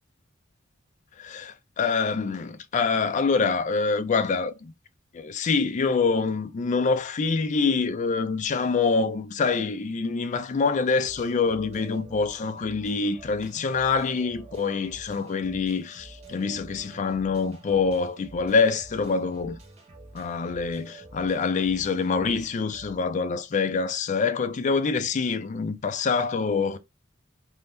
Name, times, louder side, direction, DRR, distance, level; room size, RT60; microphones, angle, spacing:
voice 1, 1.2-4.7 5.1-19.6 20.1-26.8, left 4 dB, 40° left, 0.3 m, -25 dB
sound 1, 11.0-22.9, right 2 dB, 35° right, 0.9 m, -48 dB
2.6 x 2.1 x 3.3 m
head